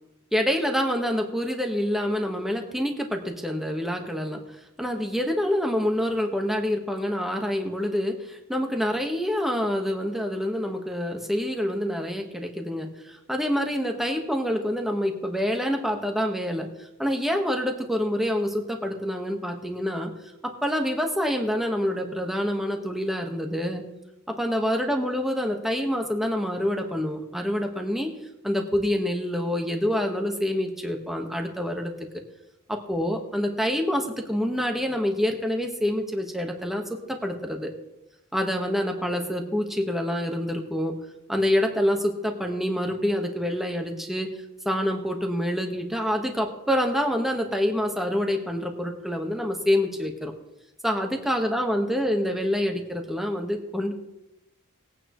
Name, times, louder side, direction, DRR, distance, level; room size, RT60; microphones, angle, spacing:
voice 1, 0.3-4.4 4.8-20.1 20.4-23.8 24.3-28.1 28.4-31.9 32.7-36.8 37.1-37.7 38.3-40.9 41.3-44.4 44.6-50.3 50.8-53.9, equal, ahead, 3 dB, 1.4 m, -26 dB
20.5 x 9.0 x 3.1 m, 0.92 s
head